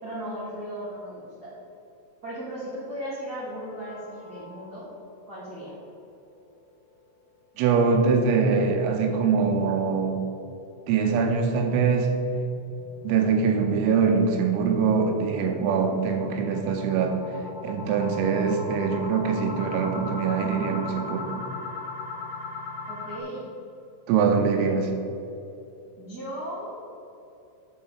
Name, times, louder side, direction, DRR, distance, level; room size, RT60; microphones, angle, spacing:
voice 1, 0.0-1.6 2.2-4.9 5.3-5.7 22.9-23.4 26.0-26.7, equal, 60° right, -10 dB, 1.0 m, -36 dB
sound 1, 3.6-5.1 5.5-5.6 5.9-6.0 6.5-6.6 11.4-23.2, left 3 dB, 60° left, 2.5 m, -39 dB
voice 2, 7.6-10.2 10.9-12.1 13.0-17.2 17.6-21.4 24.1-24.9, right 5 dB, 80° right, 3 dB, 3.5 m, -23 dB
7.7 x 5.3 x 7.4 m, 2.8 s
omnidirectional pair, 5.9 m